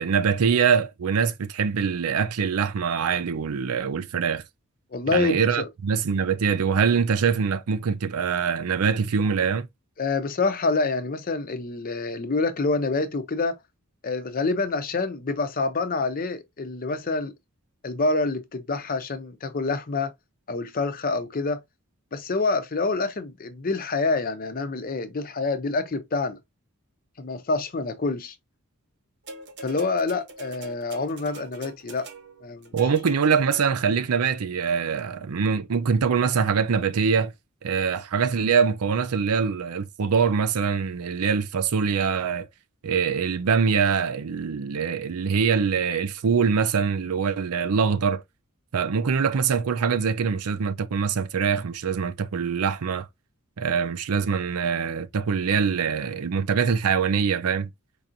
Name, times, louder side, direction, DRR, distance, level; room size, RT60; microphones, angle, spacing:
voice 1, 0.0-4.4 5.1-9.7 32.7-37.3 37.6-42.5 42.8-48.2 48.7-53.1 53.6-57.7, right 6 dB, 80° right, 0.5 m, -24 dB
voice 2, 4.9-5.7 10.0-13.6 14.0-17.3 17.8-20.1 20.5-21.6 22.1-26.4 27.2-28.3 29.6-32.1 32.4-32.7, left 3 dB, 40° left, 0.5 m, -27 dB
sound 1, 29.3-34.0 35.0-35.1, right 2 dB, 50° right, 0.8 m, -42 dB
4.6 x 2.5 x 2.7 m
head